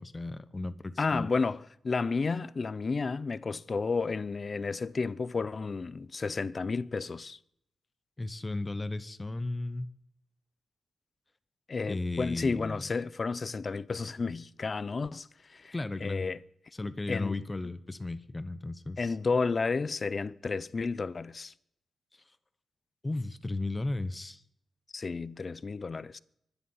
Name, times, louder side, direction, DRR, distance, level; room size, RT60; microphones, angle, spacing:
voice 1, 0.0-1.3 8.2-9.9 11.9-12.8 15.7-16.2 16.8-19.1 23.0-24.4, left 2 dB, 15° left, 0.9 m, -35 dB
voice 2, 1.0-7.4 11.7-15.7 16.0-16.4 17.1-17.4 19.0-21.5 24.9-26.2, left 4 dB, 30° left, 0.5 m, -32 dB
24.0 x 10.5 x 5.6 m
wide cardioid pair, 140°, 0 cm